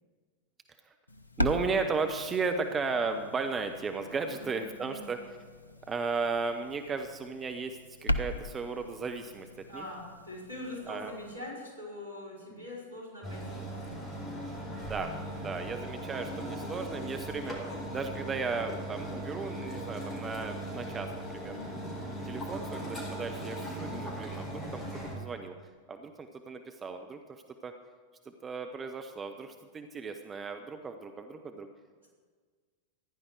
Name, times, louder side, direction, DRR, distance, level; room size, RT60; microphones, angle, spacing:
sound 1, 1.1-11.3, left 1 dB, 80° left, 0.7 m, -39 dB
voice 1, 1.4-5.2 5.9-9.8 10.9-11.1 12.5-12.6 14.8-21.5 22.2-24.8 25.2-25.5 25.9-27.7 28.2-31.7, right 4 dB, 20° right, 6 dB, 0.8 m, -35 dB
voice 2, 4.3-5.1 9.7-14.0 21.4-21.8, left 1 dB, 80° right, -4 dB, 4.8 m, -43 dB
sound 2, 13.2-25.1, right 1 dB, 20° left, 4.5 m, -38 dB
15.0 x 10.5 x 4.7 m, 1.5 s
figure-of-eight pair, 90°, 0 cm